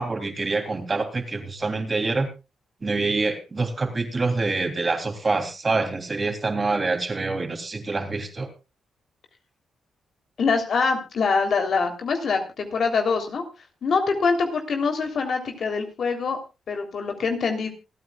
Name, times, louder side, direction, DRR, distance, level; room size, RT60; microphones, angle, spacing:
voice 1, 0.0-2.3 2.8-8.5, right 3 dB, 35° right, 4 dB, 3.3 m, -26 dB
voice 2, 10.4-13.4 13.8-16.4 16.7-17.7, left 4 dB, 65° left, 4 dB, 3.4 m, -24 dB
27.5 x 9.3 x 2.4 m, 0.28 s
cardioid pair, 65°, 0 cm